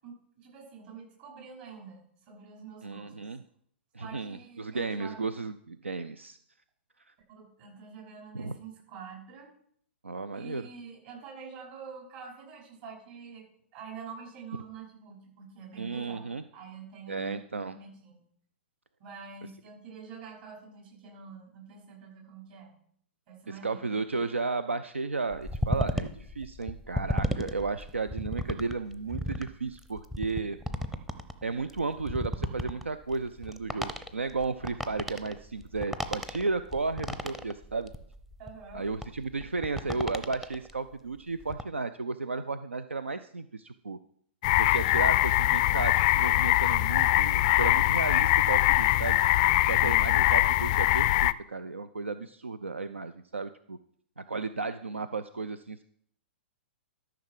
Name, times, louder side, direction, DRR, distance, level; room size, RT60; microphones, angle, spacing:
voice 1, 0.0-3.1 4.0-5.3 7.4-9.5 10.3-13.5 13.7-16.3 16.5-18.2 19.0-22.7 23.3-23.8 38.4-38.8 49.8-50.2, right 6 dB, 50° right, -1 dB, 5.2 m, -46 dB
voice 2, 2.8-3.4 3.9-6.4 7.1-7.2 8.3-8.5 10.0-10.7 15.8-16.4 17.1-17.8 23.6-30.6 31.4-37.9 38.7-44.0 44.6-49.2 49.6-53.8 54.2-55.8, right 4 dB, 85° right, 13 dB, 0.4 m, -34 dB
sound 1, 25.3-40.7 41.2-41.6, left 1 dB, 5° right, 0.6 m, -34 dB
sound 2, 44.4-51.3, left 17 dB, 40° left, 0.3 m, -23 dB
13.0 x 5.9 x 4.7 m, 0.64 s
figure-of-eight pair, 115°, 6 cm